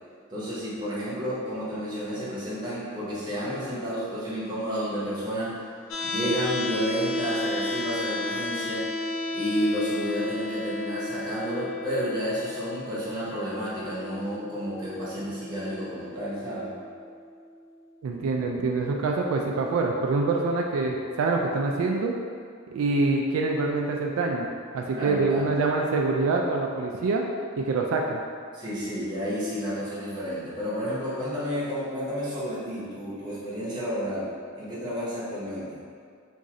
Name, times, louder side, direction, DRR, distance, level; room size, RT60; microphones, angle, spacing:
voice 1, 0.3-5.5 6.0-8.9 9.3-16.7 24.9-25.5 28.5-34.3 34.6-35.8, equal, 20° right, -9 dB, 0.9 m, -31 dB
sound 1, 5.9-17.9, left 2 dB, 70° left, 0.4 m, -34 dB
voice 2, 18.0-22.1 22.7-24.5 24.7-27.3 27.6-28.2, right 3 dB, 80° right, 1 dB, 0.3 m, -25 dB
3.0 x 2.6 x 3.7 m, 2.2 s
head